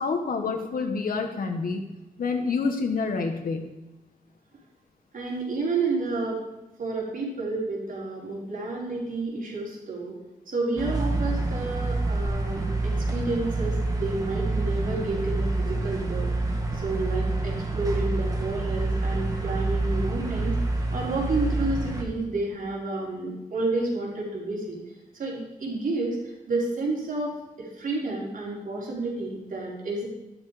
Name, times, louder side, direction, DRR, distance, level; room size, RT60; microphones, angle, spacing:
voice 1, 0.0-1.8 2.2-3.7, left 4 dB, 75° left, 3 dB, 1.4 m, -27 dB
voice 2, 5.1-6.4 6.8-10.2 10.5-20.6 20.9-24.8 25.1-30.1, right 2 dB, 70° right, -3 dB, 4.6 m, -30 dB
sound 1, 10.8-22.0, right 2 dB, 25° right, 2.3 m, -27 dB
13.0 x 11.5 x 5.0 m, 1.0 s
wide cardioid pair, 125°, 15 cm